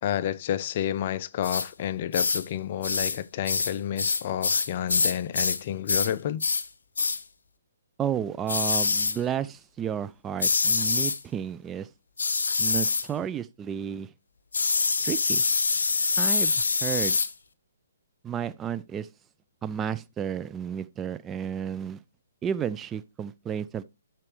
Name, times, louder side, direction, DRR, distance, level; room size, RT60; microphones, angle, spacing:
voice 1, 0.0-6.4, left 10 dB, 45° left, 0.5 m, -30 dB
sound 1, 1.4-1.7 2.1-2.5 2.8-3.2 3.5-5.6 5.9-6.1 6.4-6.7 7.0-7.2 8.5-9.2 10.4-11.2 12.2-13.1 14.5-17.3, left 4 dB, 75° left, 0.8 m, -25 dB
voice 2, 8.0-11.9 12.6-14.1 15.0-15.4 16.2-17.2 18.2-19.1 19.6-22.0 22.4-23.8, right 8 dB, 15° right, 0.3 m, -32 dB
12.0 x 4.4 x 3.2 m
figure-of-eight pair, 135°, 0 cm